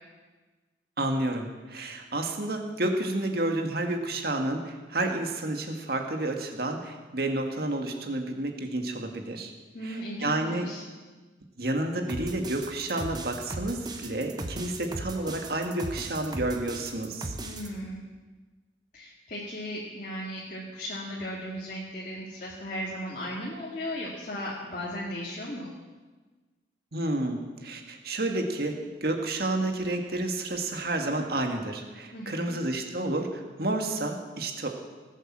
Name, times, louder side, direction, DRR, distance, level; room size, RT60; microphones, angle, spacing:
voice 1, 1.0-9.5 9.8-10.7 11.6-17.3 26.9-28.7 29.0-34.7, right 2 dB, 55° right, 3 dB, 1.8 m, -30 dB
voice 2, 9.7-10.8 17.4-18.0 18.9-25.7 32.1-32.6, equal, 45° left, -4 dB, 2.2 m, -36 dB
sound 1, 12.1-17.7, right 2 dB, 20° right, 1.1 m, -37 dB
19.0 x 8.4 x 7.4 m, 1.3 s
head